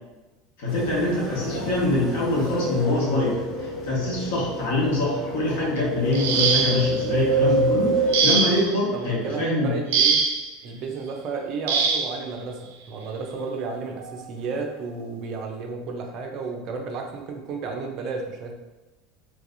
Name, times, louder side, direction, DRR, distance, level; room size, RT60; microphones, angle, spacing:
voice 1, 0.6-9.7, left 2 dB, 75° left, -5 dB, 1.4 m, -24 dB
sound 1, 0.7-8.7, right 2 dB, 30° left, 0.9 m, -28 dB
sound 2, 6.1-7.0 8.1-8.8 9.9-10.5 11.7-12.2 13.4-13.5 14.0-14.2, right 5 dB, 85° right, 0.4 m, -22 dB
voice 2, 8.9-10.2 10.6-18.5, right 4 dB, 45° right, 2 dB, 0.6 m, -32 dB
3.2 x 3.2 x 2.6 m, 1.1 s
supercardioid pair, 140°, 0 cm